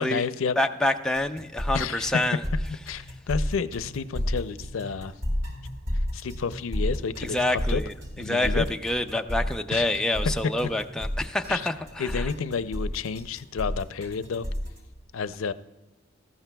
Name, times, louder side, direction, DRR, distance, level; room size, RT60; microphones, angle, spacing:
voice 1, 0.0-0.6 1.7-2.2 2.9-5.1 6.1-7.8 8.2-8.7 9.7-10.1 11.5-11.7 12.0-14.5 15.1-15.5, left 5 dB, 85° left, 14 dB, 0.5 m, -30 dB
voice 2, 0.6-2.4 7.2-12.3, left 1 dB, 5° left, 4 dB, 0.4 m, -27 dB
sound 1, 1.1-14.8, equal, 80° right, 3.8 m, -31 dB
18.0 x 14.0 x 2.3 m, 1.1 s
head